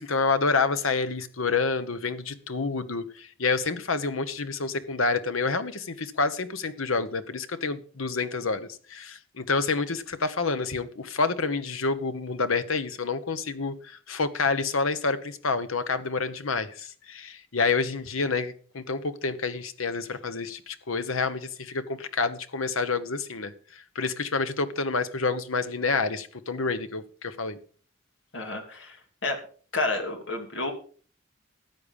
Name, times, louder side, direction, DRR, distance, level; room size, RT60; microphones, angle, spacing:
voice 1, 0.0-27.6, left 4 dB, 85° left, 11 dB, 1.1 m, -28 dB
voice 2, 28.3-29.0 29.2-29.4 29.7-30.7, left 2 dB, 65° left, 4 dB, 2.8 m, -29 dB
13.5 x 8.6 x 5.4 m, 0.43 s
head